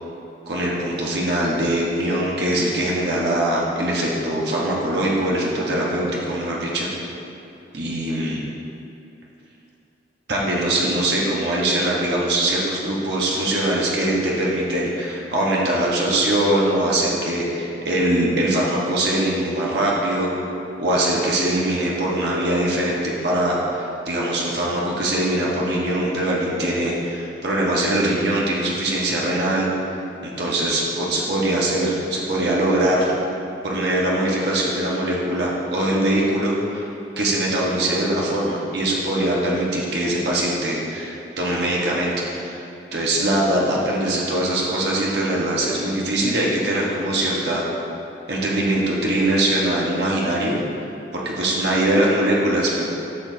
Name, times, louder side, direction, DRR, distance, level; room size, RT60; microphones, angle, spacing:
voice 1, 0.5-6.9 7.7-8.4 10.3-20.3 20.8-29.7 30.2-33.1 33.6-36.9 37.2-42.6 42.9-47.6 48.3-50.6 51.1-52.9, right 1 dB, 60° right, -4 dB, 1.2 m, -22 dB
11.5 x 6.9 x 2.8 m, 2.8 s
head